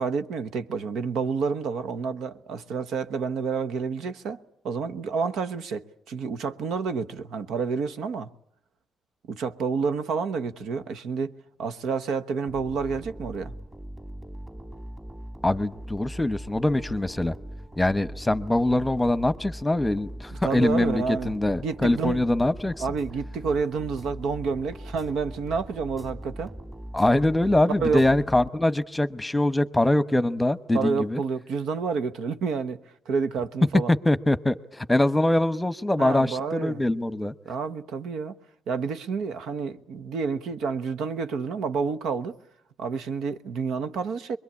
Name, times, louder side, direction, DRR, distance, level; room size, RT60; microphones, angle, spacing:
voice 1, 0.0-4.4 4.6-8.3 9.3-11.3 11.6-13.5 20.4-21.3 21.6-22.2 22.8-26.5 27.8-28.1 30.7-32.8 33.1-33.9 36.0-36.8 37.4-38.3 38.7-42.4 42.8-44.4, right 5 dB, 75° right, 1.0 m, -29 dB
sound 1, 12.5-28.9, equal, 15° right, 2.7 m, -40 dB
voice 2, 15.4-17.3 17.8-22.7 26.9-31.2 34.0-37.3, left 1 dB, 10° left, 1.1 m, -23 dB
24.5 x 22.5 x 8.5 m
cardioid pair, 90°, 0 cm